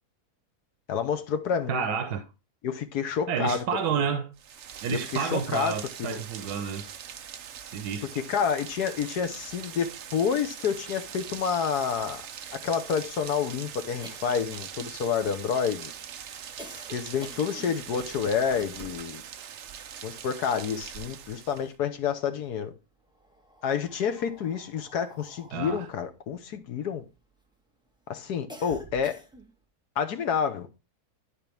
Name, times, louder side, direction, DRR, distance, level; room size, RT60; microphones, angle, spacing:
voice 1, 0.9-1.9 2.6-3.7 4.0-4.1 4.9-6.2 8.3-12.2 12.5-15.9 16.9-19.2 20.0-22.7 23.6-27.0 28.1-29.2 30.0-30.7, left 7 dB, 85° left, 1.6 m, -29 dB
voice 2, 1.7-2.2 3.3-4.3 4.8-6.9 7.6-8.2 25.5-25.9, right 7 dB, 90° right, 1.4 m, -30 dB
Rain, 4.4-21.8, right 8 dB, 55° right, 0.9 m, -42 dB
sound 1, 14.0-19.1 19.4-21.0 21.3-22.3 23.0-27.5 27.9-29.6, equal, 5° right, 1.3 m, -49 dB
12.0 x 4.5 x 3.4 m
omnidirectional pair, 1.7 m